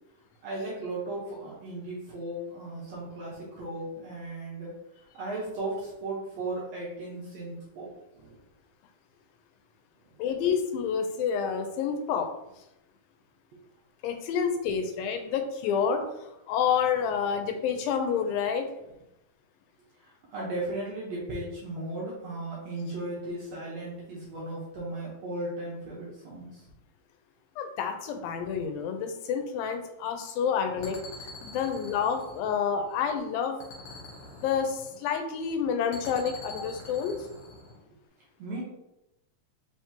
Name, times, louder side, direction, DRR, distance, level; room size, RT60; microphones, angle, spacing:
voice 1, 0.4-4.7 5.1-7.9 8.2-8.4 10.1-10.2 20.0-26.7 38.4-38.6, right 2 dB, 65° right, -6 dB, 1.8 m, -36 dB
voice 2, 10.2-12.3 14.0-18.7 27.6-31.0 31.4-33.6 34.2-37.2, left 7 dB, 85° left, 6 dB, 2.4 m, -29 dB
sound 1, 30.8-33.1 33.6-35.2 35.9-37.8, left 2 dB, 65° left, 2.4 m, -45 dB
5.3 x 3.6 x 2.8 m, 0.88 s
omnidirectional pair, 4.1 m